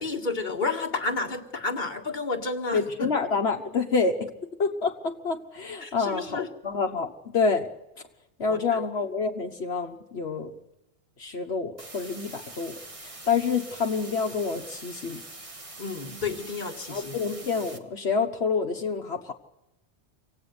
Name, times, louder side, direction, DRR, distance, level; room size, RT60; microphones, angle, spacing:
voice 1, 0.0-3.1 5.8-6.5 8.5-8.8 15.8-17.2, left 3 dB, 45° left, 3 dB, 2.0 m, -31 dB
voice 2, 2.7-4.3 4.6-7.7 8.4-10.5 11.2-15.2 16.9-19.3, left 5 dB, 70° left, 3 dB, 1.5 m, -28 dB
sound 1, 11.8-17.8, right 2 dB, 30° right, 1.6 m, -44 dB
25.5 x 17.0 x 9.6 m, 0.91 s
omnidirectional pair, 1.1 m